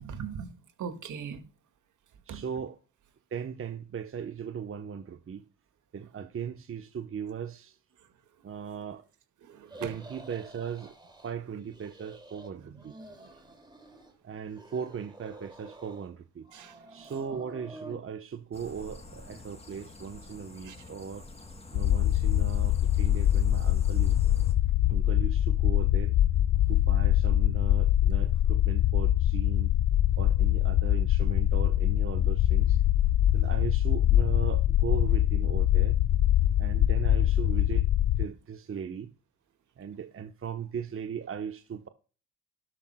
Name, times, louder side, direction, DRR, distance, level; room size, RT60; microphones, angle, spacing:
voice 1, 0.0-1.4 2.3-2.4 9.4-9.9 12.6-12.8 13.1-13.2 16.5-16.7 20.6-20.8 39.9-40.0, right 7 dB, 65° right, 2.1 m, -40 dB
voice 2, 2.2-2.8 3.3-5.4 5.9-7.8 8.4-9.1 9.8-10.9 11.2-13.4 14.2-16.5 16.8-21.3 21.7-24.2 24.9-26.2 26.7-29.8 30.2-32.8 33.3-36.0 36.6-37.9 38.2-39.1 39.8-41.9, right 7 dB, 40° right, 1.0 m, -38 dB
sound 1, 9.7-11.3 11.6-12.5 12.8-14.1 14.5-16.1 16.4-18.0, right 1 dB, 15° right, 3.7 m, -49 dB
sound 2, 18.5-24.5, left 2 dB, 20° left, 2.7 m, -42 dB
sound 3, 21.7-38.3, left 12 dB, 55° left, 0.5 m, -24 dB
12.5 x 12.0 x 2.3 m
supercardioid pair, 60°, 33 cm